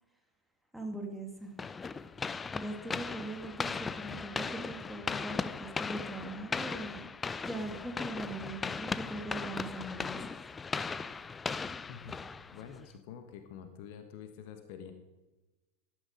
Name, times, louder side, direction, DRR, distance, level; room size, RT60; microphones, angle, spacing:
voice 1, 0.7-1.5 2.5-7.1 7.4-10.2, right 2 dB, 5° right, 2 dB, 2.8 m, -41 dB
sound 1, 1.6-12.9, left 5 dB, 15° left, 0.5 m, -38 dB
voice 2, 12.5-14.9, left 8 dB, 45° left, 7 dB, 1.6 m, -47 dB
17.5 x 12.5 x 5.2 m, 1.1 s
figure-of-eight pair, 90°, 0 cm